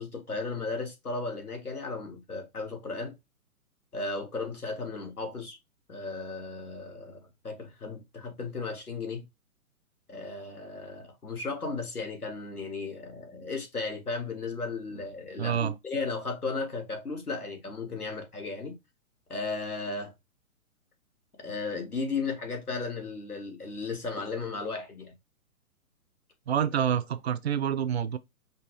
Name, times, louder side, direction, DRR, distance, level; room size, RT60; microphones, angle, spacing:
voice 1, 0.0-3.1 3.9-5.6 5.9-9.3 10.1-18.8 19.3-20.1 21.4-25.1, left 3 dB, 85° left, 1.9 m, -35 dB
voice 2, 15.4-15.7 26.5-28.2, right 9 dB, 50° right, 0.5 m, -27 dB
5.4 x 2.5 x 3.1 m
figure-of-eight pair, 125°, 43 cm